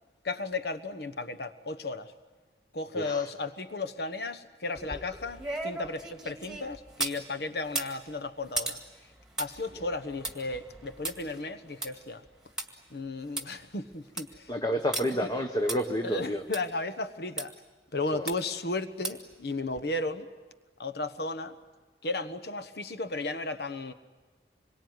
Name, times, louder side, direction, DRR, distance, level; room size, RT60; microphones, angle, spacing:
voice 1, 0.2-2.1 2.7-8.8 9.4-12.2 12.9-14.5 15.2-15.3 16.0-17.5 17.9-20.3 20.8-21.5 22.0-23.9, left 2 dB, 60° left, 10 dB, 1.2 m, -34 dB
sound 1, 4.7-7.2 7.6-12.7 13.0-13.1 13.4-13.5 13.9-14.3 14.9-15.0 15.7-15.8 16.5-16.6 17.4-17.5 18.3-18.6 19.0-19.3 19.7-19.8, right 2 dB, 5° right, 2.1 m, -37 dB
voice 2, 14.5-16.4 18.1-18.3, equal, 25° left, 4 dB, 1.2 m, -29 dB
26.5 x 23.0 x 9.5 m, 1.3 s
head